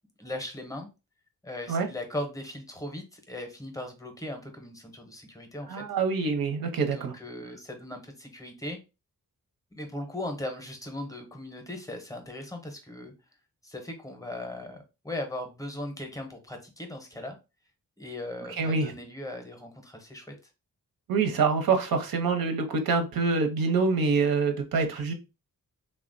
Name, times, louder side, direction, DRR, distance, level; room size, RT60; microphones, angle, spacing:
voice 1, 0.2-0.9 1.4-5.8 6.9-8.8 9.7-13.1 13.6-14.8 15.0-17.4 18.0-20.3, left 1 dB, 10° left, 4 dB, 0.6 m, -38 dB
voice 2, 5.7-7.1 18.5-18.9 21.1-25.1, right 4 dB, 85° right, 5 dB, 0.7 m, -26 dB
3.4 x 2.1 x 2.4 m, 0.28 s
wide cardioid pair, 150°, 34 cm